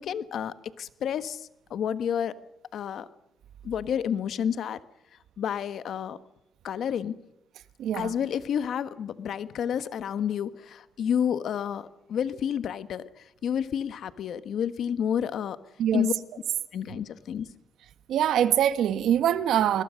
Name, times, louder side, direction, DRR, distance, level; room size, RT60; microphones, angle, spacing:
voice 1, 0.0-2.3 2.7-3.1 3.6-4.8 5.4-6.2 6.6-7.1 7.9-15.6 15.9-16.1 16.7-17.5, left 8 dB, 75° left, 12 dB, 1.3 m, -30 dB
voice 2, 7.8-8.1 15.8-16.1 18.1-19.8, right 10 dB, 85° right, 11 dB, 1.4 m, -23 dB
29.0 x 21.0 x 6.5 m, 0.87 s
cardioid pair, 85°, 0 cm